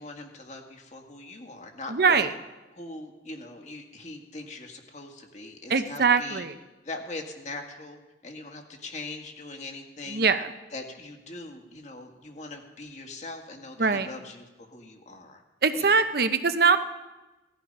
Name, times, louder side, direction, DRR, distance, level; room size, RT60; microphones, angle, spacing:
voice 1, 0.0-2.3 2.7-6.4 6.8-10.3 10.7-15.4 15.8-16.0, left 2 dB, 40° left, 3 dB, 2.1 m, -41 dB
voice 2, 1.9-2.3 5.7-6.5 10.1-10.4 13.8-14.1 15.6-16.8, right 5 dB, 60° right, 10 dB, 0.8 m, -22 dB
18.0 x 13.5 x 5.5 m, 1.1 s
head